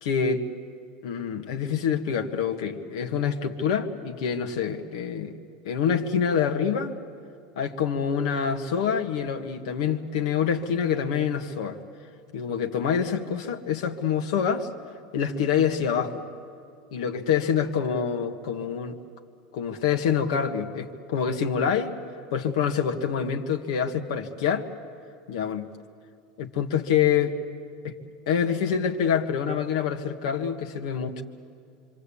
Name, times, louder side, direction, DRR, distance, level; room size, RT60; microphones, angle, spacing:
voice 1, 0.0-0.4 1.0-5.4 5.6-6.9 7.6-11.8 12.3-14.7 15.1-16.2 16.9-19.0 19.5-22.0 22.3-24.7 25.3-25.7 26.4-27.3 28.3-31.2, left 7 dB, 90° left, 3 dB, 1.6 m, -26 dB
26.0 x 26.0 x 8.6 m, 2.5 s
supercardioid pair, 175°, 3 cm